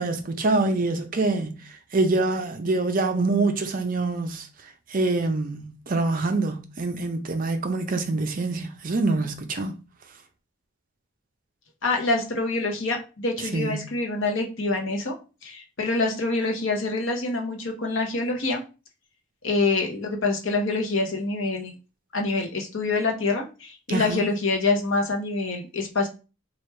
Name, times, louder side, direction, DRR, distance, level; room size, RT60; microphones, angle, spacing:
voice 1, 0.0-1.5 1.9-4.5 4.9-9.7 13.5-13.8 23.9-24.2, right 3 dB, 40° right, 0.5 m, -25 dB
voice 2, 11.8-15.1 15.4-18.6 19.4-21.7 22.1-26.1, left 3 dB, 55° left, 0.8 m, -26 dB
3.3 x 2.4 x 4.3 m
head